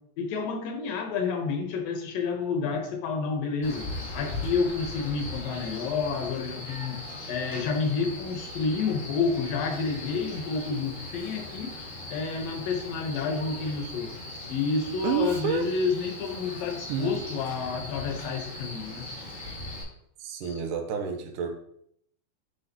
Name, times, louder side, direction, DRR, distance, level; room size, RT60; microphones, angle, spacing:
voice 1, 0.2-3.9 4.1-7.0 7.3-11.7 12.1-14.2 14.5-19.1 20.4-20.6, left 5 dB, 75° left, 4 dB, 2.7 m, -29 dB
Male speech man speaking, 3.6-19.8, left 2 dB, 30° left, 1.7 m, -39 dB
Speech, 9.7-9.8 15.0-15.7 16.9-17.2, right 8 dB, 90° right, 2.4 m, -27 dB
voice 2, 20.2-21.6, right 5 dB, 75° right, 4 dB, 2.3 m, -32 dB
7.6 x 5.9 x 2.9 m, 0.71 s
omnidirectional pair, 4.1 m